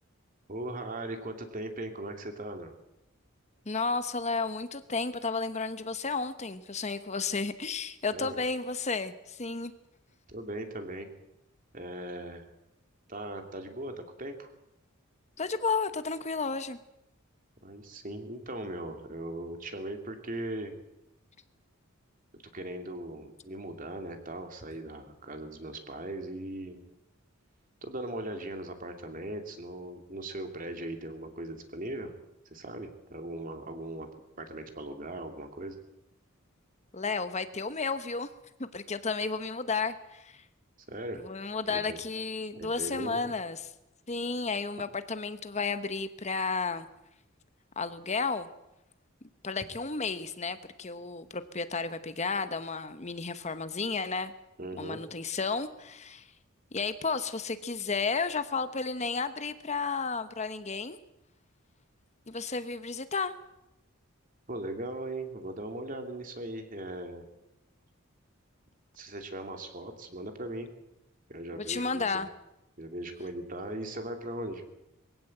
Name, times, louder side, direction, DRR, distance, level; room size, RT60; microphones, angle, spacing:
voice 1, 0.5-2.7 8.1-8.4 10.3-11.1 11.7-12.5 13.1-14.5 17.6-20.7 22.5-26.8 27.8-32.1 32.5-34.1 34.4-35.7 40.9-41.2 41.7-42.0 42.5-43.2 54.6-55.0 64.5-67.2 69.0-70.7 71.3-72.3 72.8-74.6, right 1 dB, 40° right, 5 dB, 2.8 m, -39 dB
voice 2, 3.7-9.7 15.4-16.8 36.9-38.3 38.6-40.4 41.2-43.7 44.1-46.9 47.8-48.5 49.4-54.3 54.8-56.3 56.7-61.0 62.3-63.3 71.7-72.3, left 4 dB, 35° left, 11 dB, 1.0 m, -32 dB
22.5 x 16.5 x 7.9 m, 0.89 s
head